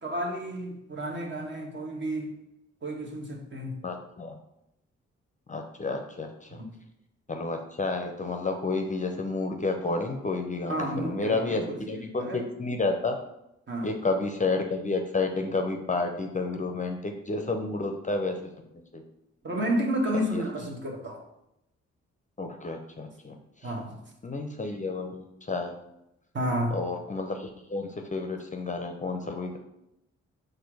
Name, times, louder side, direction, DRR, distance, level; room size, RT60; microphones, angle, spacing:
voice 1, 0.0-2.3 2.8-3.8 6.5-6.8 10.7-12.4 13.7-13.9 19.4-21.2 23.6-24.0 26.3-26.9, right 1 dB, 40° right, 1 dB, 1.1 m, -31 dB
voice 2, 3.8-4.3 5.5-6.3 7.3-13.2 13.8-18.4 18.9-19.0 20.1-20.4 22.4-23.4 24.2-25.7 26.7-29.6, left 3 dB, 25° left, 4 dB, 0.6 m, -30 dB
4.3 x 2.6 x 4.8 m, 0.84 s
supercardioid pair, 50°, 29 cm